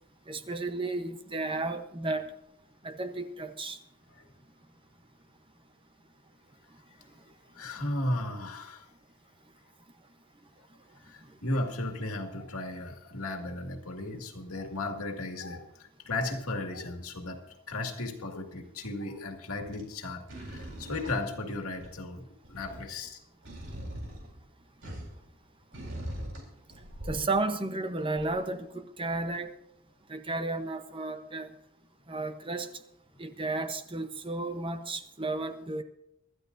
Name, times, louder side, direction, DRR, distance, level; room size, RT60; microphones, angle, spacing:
voice 1, 0.3-2.3 2.8-3.8 27.1-29.5 30.1-31.5 32.1-32.7 33.2-35.8, right 2 dB, 25° right, 8 dB, 0.8 m, -33 dB
voice 2, 7.6-8.8 11.1-17.4 17.7-23.2, left 2 dB, 90° left, 4 dB, 2.0 m, -35 dB
sound 1, 16.8-17.2 19.5-19.9 20.3-22.1 22.4-25.3 25.7-27.4 28.1-28.4 29.1-29.2, equal, 60° right, 3.9 m, -42 dB
25.0 x 12.5 x 2.6 m, 0.79 s
head